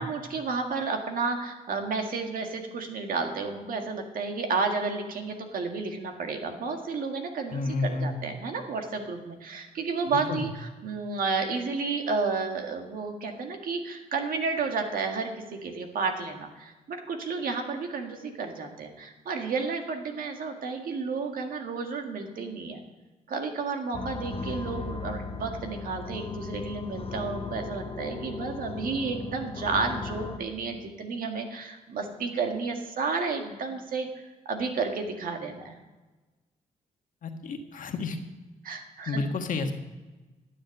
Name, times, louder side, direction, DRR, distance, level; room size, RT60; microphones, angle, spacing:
voice 1, 0.0-22.8 23.3-34.1 34.5-35.8 38.6-39.2, right 4 dB, 70° right, 4 dB, 1.8 m, -31 dB
voice 2, 7.5-8.2 10.1-10.4 37.2-38.2 39.1-39.7, left 3 dB, 65° left, 4 dB, 1.5 m, -30 dB
sound 1, 23.9-30.4, left 4 dB, 40° left, 1.2 m, -37 dB
12.0 x 7.5 x 6.5 m, 1.2 s
cardioid pair, 80°, 15 cm